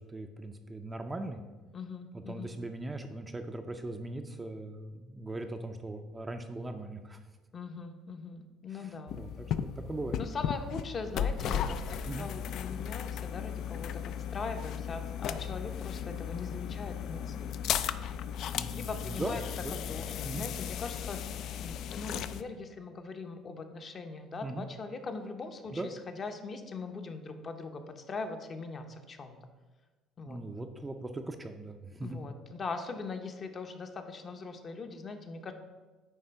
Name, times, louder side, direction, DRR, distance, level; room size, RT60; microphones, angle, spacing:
voice 1, 0.1-1.4 2.3-7.2 9.2-9.3 9.9-10.2 12.1-12.3 18.5-19.4 19.6-19.8 20.2-20.5 24.4-24.7 25.7-25.9 30.3-32.2, right 2 dB, 15° right, 6 dB, 0.4 m, -39 dB
voice 2, 1.7-2.5 7.5-9.2 10.1-17.6 18.4-19.4 19.7-29.4 30.2-30.4 32.0-35.5, left 4 dB, 35° left, 6 dB, 0.7 m, -41 dB
sound 1, 9.1-22.4, left 8 dB, 60° left, 0.3 m, -36 dB
9.3 x 3.3 x 5.6 m, 1.3 s
cardioid pair, 130°, 0 cm